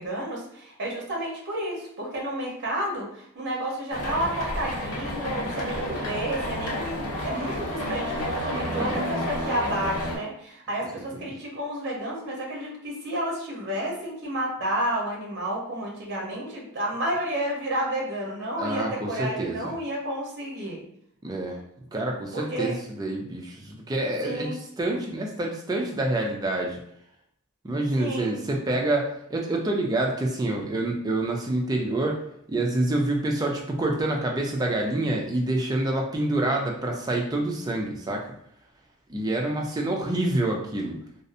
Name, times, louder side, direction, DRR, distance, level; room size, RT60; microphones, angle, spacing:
voice 1, 0.0-20.8 22.3-22.7 24.2-24.6 28.0-28.3, right 1 dB, 50° right, -2 dB, 0.8 m, -31 dB
sound 1, 3.9-10.2, equal, 80° left, 0.6 m, -31 dB
voice 2, 8.8-9.2 11.2-11.3 18.6-19.7 21.2-21.6 21.9-26.8 27.6-32.2 32.5-38.2 39.1-41.0, right 2 dB, 20° right, 0 dB, 0.4 m, -27 dB
2.6 x 2.0 x 2.5 m, 0.70 s
head